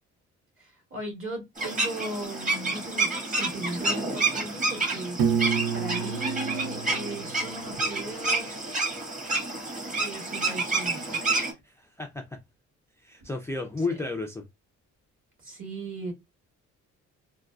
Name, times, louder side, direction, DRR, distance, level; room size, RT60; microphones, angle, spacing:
voice 1, 0.6-5.2 5.7-8.8 10.0-11.2 15.4-16.1, right 2 dB, 45° right, 2.1 m, -37 dB
sound 1, 1.6-11.5, right 3 dB, 25° right, 1.5 m, -29 dB
Piano, 5.2-8.1, right 7 dB, 80° right, 0.7 m, -30 dB
voice 2, 11.6-12.2 13.0-14.4, left 3 dB, 10° left, 0.4 m, -32 dB
3.6 x 2.3 x 2.3 m
cardioid pair, 90°, 30 cm